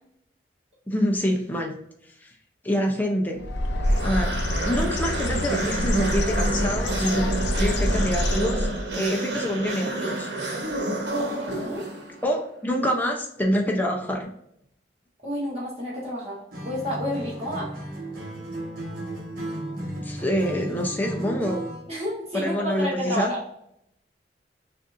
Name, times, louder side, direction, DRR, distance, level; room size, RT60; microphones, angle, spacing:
voice 1, 0.9-1.8 2.2-2.3 2.6-3.4 4.0-4.4 4.6-7.3 7.6-8.7 8.9-10.3 12.2-14.3 20.0-21.7 22.3-23.3, equal, 10° left, 1 dB, 0.6 m, -26 dB
Bird, 3.4-8.9, left 1 dB, 80° left, 0.6 m, -26 dB
sound 1, 3.8-12.3, right 2 dB, 75° right, 1.3 m, -30 dB
voice 2, 11.2-11.9 15.2-17.7 21.9-23.4, equal, 35° right, -6 dB, 1.2 m, -30 dB
Acoustic guitar, 16.5-21.9, right 1 dB, 55° right, 1.4 m, -34 dB
6.3 x 2.6 x 2.6 m, 0.73 s
head